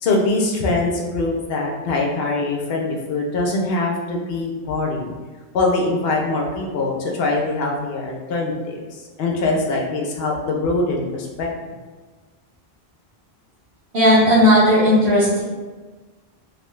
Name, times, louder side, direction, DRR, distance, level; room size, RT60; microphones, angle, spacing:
voice 1, 0.0-5.1 5.5-11.7, left 2 dB, 70° left, -1 dB, 0.8 m, -23 dB
voice 2, 13.9-15.4, equal, 80° right, -12 dB, 1.2 m, -14 dB
2.9 x 2.2 x 3.0 m, 1.3 s
omnidirectional pair, 1.0 m